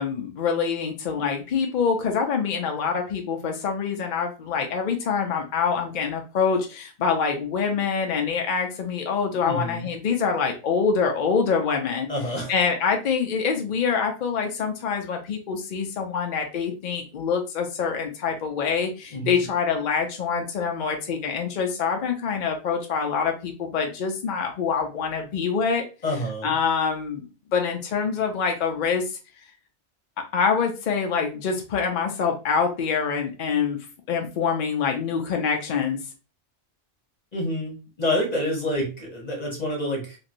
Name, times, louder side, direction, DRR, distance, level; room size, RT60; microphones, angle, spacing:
voice 1, 0.0-12.1 12.5-25.8 26.4-29.2 30.2-33.8 34.1-36.0, left 6 dB, 60° left, 2 dB, 0.5 m, -25 dB
voice 2, 9.4-9.9 12.1-12.5 19.1-19.5 26.0-26.5 37.3-40.2, left 1 dB, 35° left, -1 dB, 0.9 m, -28 dB
3.0 x 2.5 x 2.5 m, 0.32 s
omnidirectional pair, 1.3 m